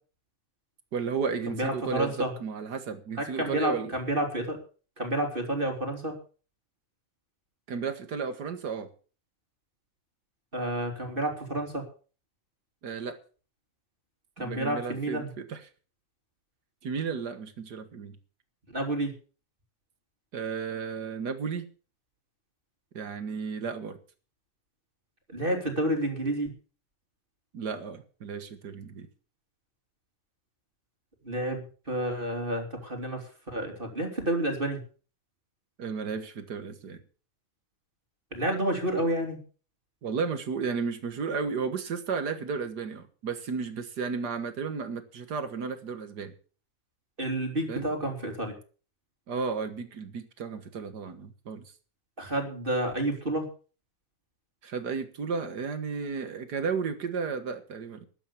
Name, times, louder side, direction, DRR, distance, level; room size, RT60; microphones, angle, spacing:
voice 1, 0.9-3.9 7.7-8.9 12.8-13.2 14.4-15.7 16.8-18.2 20.3-21.7 22.9-24.0 27.5-29.1 35.8-37.0 40.0-46.3 47.7-47.9 49.3-51.6 54.6-58.1, right 5 dB, 45° right, 10 dB, 1.4 m, -33 dB
voice 2, 1.5-2.3 3.1-4.6 5.0-6.1 10.5-11.9 14.4-15.3 18.7-19.1 25.3-26.5 31.2-34.8 38.3-39.4 47.2-48.5 52.2-53.4, right 1 dB, 15° right, 3 dB, 2.9 m, -30 dB
13.5 x 9.1 x 7.0 m, 0.39 s
omnidirectional pair, 3.6 m